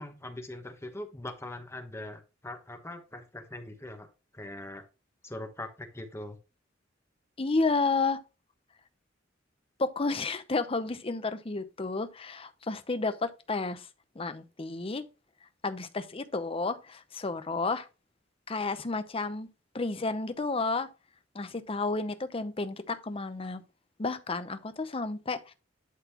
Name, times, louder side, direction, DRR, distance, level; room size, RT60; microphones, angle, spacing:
voice 1, 0.0-4.1 4.3-4.8 5.2-6.4, left 1 dB, 15° left, 1.0 m, -41 dB
voice 2, 7.4-8.2 9.8-13.9 14.2-15.0 15.6-17.9 18.5-19.5 19.7-20.9 21.3-23.6 24.0-25.5, left 3 dB, 30° left, 0.7 m, -31 dB
11.5 x 4.1 x 2.9 m
head